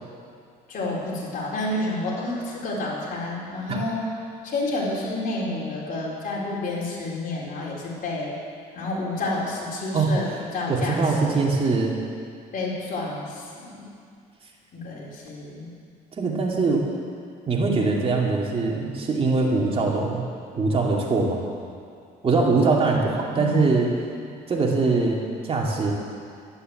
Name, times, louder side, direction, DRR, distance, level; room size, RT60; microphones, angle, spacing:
voice 1, 0.7-4.1 4.4-8.3 8.7-11.4 12.5-13.9 14.7-15.7 23.3-24.3, left 2 dB, 55° left, -4 dB, 4.4 m, -30 dB
voice 2, 10.7-12.0 16.2-16.9 17.5-20.2 20.5-21.4 22.2-23.9 24.5-25.9, right 3 dB, 35° right, -2 dB, 2.6 m, -22 dB
12.5 x 11.0 x 7.9 m, 2.3 s
cardioid pair, 110°, 17 cm